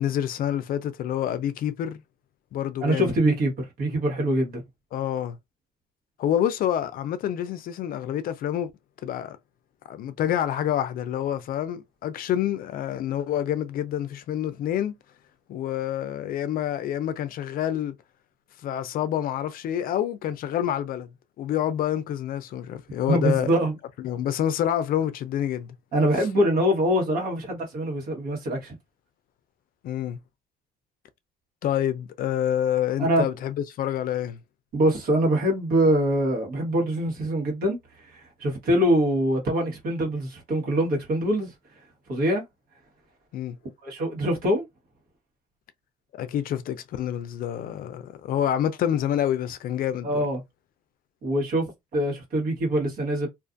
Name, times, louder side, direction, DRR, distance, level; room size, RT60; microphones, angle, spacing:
voice 1, 0.0-2.0 2.5-3.1 4.9-5.4 6.2-8.7 9.0-9.4 9.9-15.0 15.5-17.9 18.6-21.1 21.4-23.5 24.0-25.7 29.8-30.2 31.6-34.4 43.3-43.6 46.1-50.2, left 10 dB, 60° left, 0.4 m, -27 dB
voice 2, 2.8-4.6 23.1-23.7 25.9-28.7 33.0-33.3 34.7-41.5 42.1-42.4 43.8-44.7 50.0-50.4 51.2-51.7 51.9-53.3, right 1 dB, 60° right, 1.3 m, -24 dB
2.5 x 2.4 x 2.4 m
cardioid pair, 110°, 17 cm